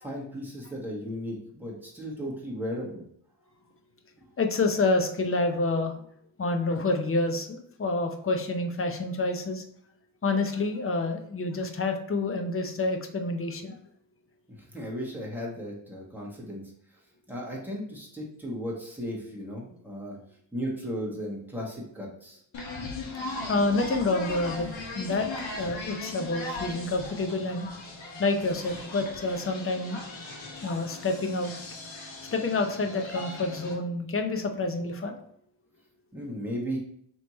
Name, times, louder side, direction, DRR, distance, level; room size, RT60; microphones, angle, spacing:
voice 1, 0.0-3.0 14.7-16.6 17.3-20.2 20.5-22.4 36.1-36.8, equal, 5° right, -4 dB, 1.6 m, -35 dB
voice 2, 4.4-5.9 6.4-9.6 10.2-13.8 23.5-24.7 25.0-25.3 25.6-27.7 28.2-30.0 30.6-31.5 32.3-35.2, left 2 dB, 30° left, 4 dB, 0.7 m, -28 dB
sound 1, 22.5-33.7, left 3 dB, 70° left, 1.3 m, -39 dB
3.3 x 3.1 x 4.1 m, 0.66 s
cardioid pair, 65°, 47 cm